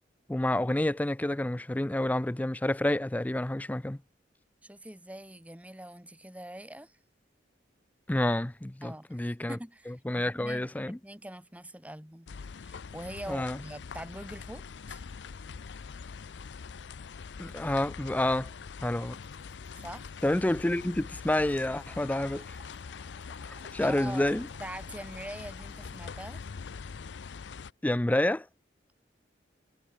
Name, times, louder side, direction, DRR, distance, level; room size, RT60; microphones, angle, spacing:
voice 1, 0.3-4.0 8.1-9.6 9.9-11.0 13.3-13.6 17.4-18.5 18.8-19.2 20.2-22.6 23.7-24.5 27.8-28.5, left 1 dB, 10° left, 0.4 m, -29 dB
voice 2, 4.6-7.0 8.8-12.3 12.6-14.6 14.9-15.0 19.7-20.1 23.8-24.3 24.6-26.5, right 1 dB, 10° right, 2.0 m, -43 dB
sound 1, 12.3-27.7, left 5 dB, 70° left, 0.5 m, -43 dB
Trickle dribble / Fill (with liquid), 19.1-26.5, right 4 dB, 35° right, 5.7 m, -61 dB
head